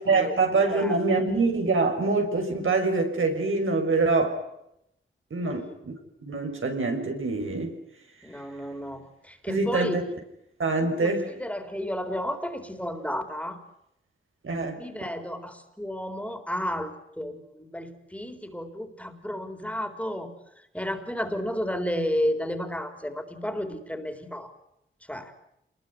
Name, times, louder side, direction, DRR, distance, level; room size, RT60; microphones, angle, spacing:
voice 1, 0.0-4.4 5.3-5.9 6.2-7.8 9.5-10.0 10.6-11.3 14.4-15.1, right 3 dB, 85° right, 5.7 m, -25 dB
voice 2, 8.2-10.0 10.8-11.1 11.4-13.6 14.8-20.3 20.7-24.5 25.1-25.3, equal, 5° left, 4.0 m, -32 dB
27.5 x 21.5 x 9.5 m
wide cardioid pair, 85°, 20 cm